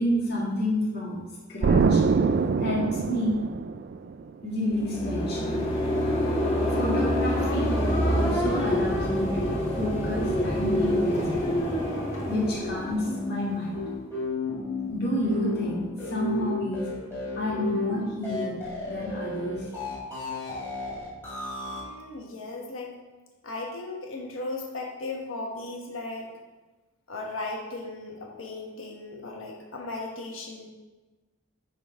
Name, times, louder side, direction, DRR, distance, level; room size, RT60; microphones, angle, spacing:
voice 1, 0.0-2.0 2.6-3.4 4.4-5.6 6.7-7.7 8.1-11.5 12.3-13.9 14.9-16.9 17.3-18.6 18.9-19.7, equal, 50° left, -5 dB, 1.9 m, -29 dB
Explosion, 1.6-4.3, right 4 dB, 50° right, 0.3 m, -23 dB
sound 1, 4.6-13.7, equal, 35° left, 1.6 m, -26 dB
sound 2, 12.6-21.8, left 3 dB, 10° left, 2.7 m, -33 dB
voice 2, 21.7-22.9 23.4-26.4 27.1-30.7, left 2 dB, 85° left, -1 dB, 1.3 m, -36 dB
9.2 x 4.0 x 4.8 m, 1.2 s
head